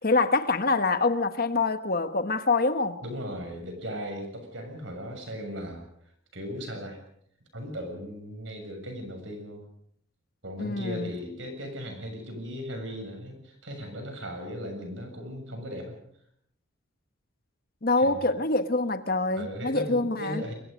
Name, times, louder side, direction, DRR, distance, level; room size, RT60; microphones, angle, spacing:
voice 1, 0.0-3.0 10.6-11.1 17.8-20.4, left 3 dB, 45° left, 1.2 m, -25 dB
voice 2, 3.0-5.9 6.3-7.0 7.5-9.7 10.4-16.0 18.0-18.3 19.3-20.5, equal, 60° right, 6.9 m, -37 dB
28.5 x 23.0 x 5.3 m
head